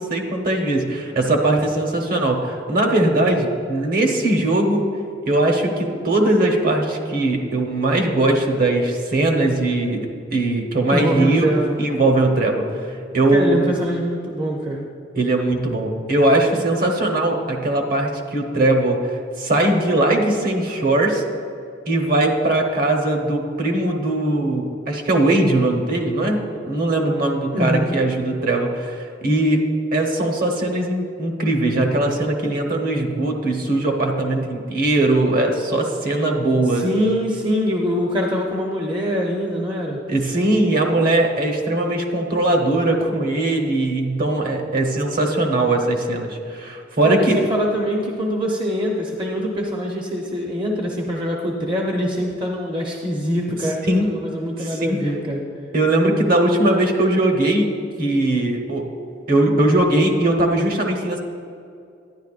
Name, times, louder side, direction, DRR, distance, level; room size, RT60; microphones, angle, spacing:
voice 1, 0.0-4.8 5.3-10.0 10.3-11.5 11.8-12.6 13.1-13.6 15.2-19.0 19.4-21.2 21.9-26.4 26.6-28.9 29.2-36.9 40.1-47.4 53.9-54.1 54.6-55.0 55.7-57.7 58.0-58.8 59.3-61.2, right 2 dB, 55° right, 3 dB, 1.0 m, -20 dB
voice 2, 10.8-11.8 13.3-14.9 27.5-28.0 36.7-40.0 47.0-55.4, equal, 25° right, -1 dB, 0.7 m, -24 dB
11.5 x 10.0 x 2.4 m, 2.4 s
head